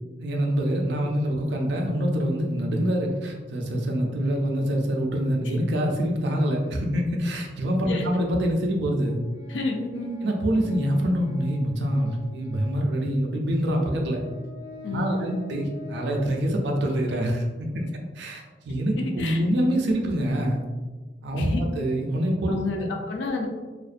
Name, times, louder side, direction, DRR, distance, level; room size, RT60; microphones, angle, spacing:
voice 1, 0.2-9.2 10.2-14.2 14.9-17.8 18.1-20.6 21.2-22.9, equal, 70° right, 1 dB, 0.4 m, -25 dB
Organ, 9.0-12.9 13.6-13.7 14.1-16.3, left 3 dB, 45° left, 1.3 m, -44 dB
voice 2, 9.5-10.2 14.8-15.4 19.0-19.4 21.4-21.6 22.5-23.5, left 2 dB, 80° left, 2 dB, 0.4 m, -29 dB
2.5 x 2.1 x 2.4 m, 1.3 s
head